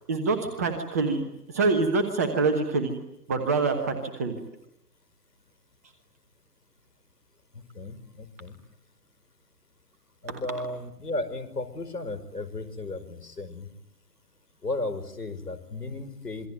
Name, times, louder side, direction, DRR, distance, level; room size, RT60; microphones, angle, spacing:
voice 1, 0.1-1.2 1.5-3.0 3.3-4.4 10.3-10.4, right 4 dB, 10° right, 7 dB, 1.1 m, -25 dB
voice 2, 7.5-8.6 10.2-13.7 14.6-16.5, left 2 dB, 70° left, 13 dB, 5.6 m, -35 dB
26.5 x 23.5 x 9.3 m, 0.81 s
figure-of-eight pair, 145°, 49 cm